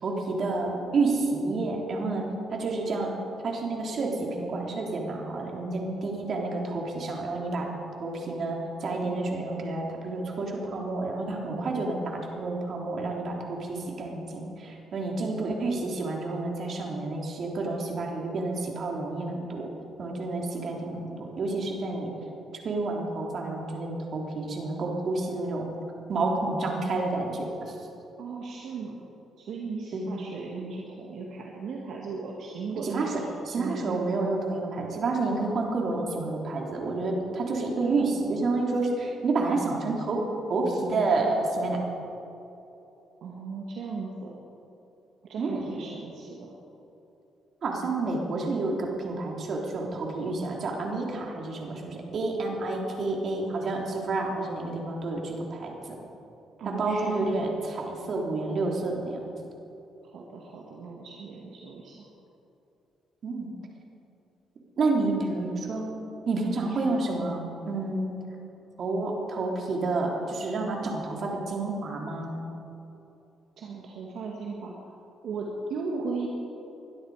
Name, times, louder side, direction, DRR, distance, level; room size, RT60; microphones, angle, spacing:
voice 1, 0.0-3.1 3.4-7.7 8.0-19.7 20.0-22.1 22.6-25.6 26.1-27.7 29.9-30.1 32.8-40.2 40.5-41.8 45.4-45.7 47.6-55.7 56.6-59.2 63.2-63.5 64.8-65.9 66.3-68.1 68.8-72.4, right 3 dB, 55° right, 0 dB, 3.4 m, -29 dB
voice 2, 28.2-29.1 29.4-33.3 33.6-34.1 43.2-44.4 45.3-46.6 56.6-57.3 60.0-62.1 66.3-67.0 73.6-74.7 75.2-76.3, right 4 dB, 70° right, -2 dB, 2.0 m, -37 dB
22.0 x 12.5 x 5.0 m, 2.9 s
cardioid pair, 90°, 0 cm